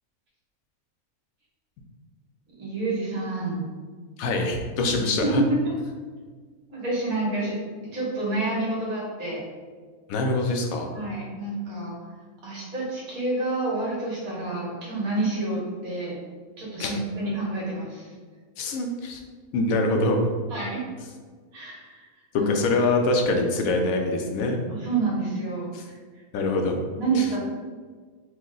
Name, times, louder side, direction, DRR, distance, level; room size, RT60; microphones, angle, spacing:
voice 1, 2.6-3.6 5.2-5.7 6.7-7.6 7.8-9.4 10.9-12.0 12.4-16.2 16.6-18.1 20.5-20.8 21.5-22.0 22.3-22.5 24.8-25.9 26.9-27.4, right 2 dB, 75° right, -5 dB, 1.7 m, -28 dB
voice 2, 4.2-5.4 10.1-10.9 16.8-17.0 18.6-19.2 19.5-20.3 22.3-24.7 25.7-25.8 26.3-26.8 27.1-27.3, left 2 dB, 75° left, 3 dB, 1.0 m, -24 dB
4.6 x 2.1 x 3.8 m, 1.5 s
omnidirectional pair, 1.5 m